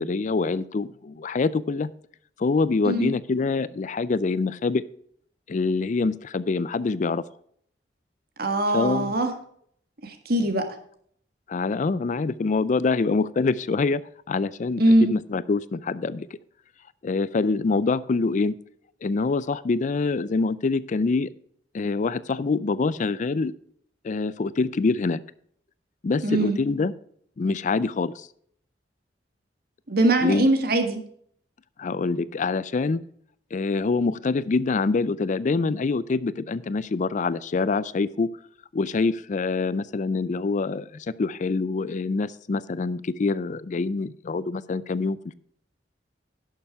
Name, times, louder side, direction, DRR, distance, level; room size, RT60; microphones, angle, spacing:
voice 1, 0.0-1.9 2.4-4.8 5.5-7.2 8.7-9.1 11.5-14.0 14.3-16.3 17.0-18.6 19.0-21.3 21.7-23.5 24.0-25.2 26.0-26.9 27.4-28.3 30.2-30.5 31.8-33.0 33.5-38.3 38.7-45.3, left 4 dB, 45° left, 18 dB, 0.4 m, -25 dB
voice 2, 8.4-9.3 10.0-10.6 14.8-15.1 26.2-26.6 29.9-31.0, right 1 dB, 60° right, 7 dB, 1.7 m, -21 dB
11.0 x 6.8 x 4.7 m, 0.63 s
head